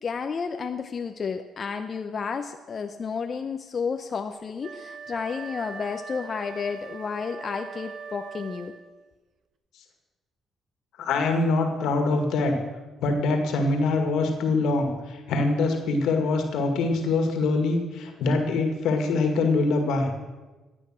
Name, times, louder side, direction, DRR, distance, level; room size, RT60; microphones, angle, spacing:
voice 1, 0.0-8.7, left 5 dB, 45° left, 6 dB, 0.7 m, -31 dB
Wind instrument woodwind instrument, 4.6-9.0, right 5 dB, 65° right, 1.2 m, -41 dB
voice 2, 11.0-12.6 13.0-20.1, left 3 dB, 80° left, 5 dB, 2.0 m, -24 dB
14.0 x 9.0 x 6.3 m, 1.2 s
cardioid pair, 90°, 0 cm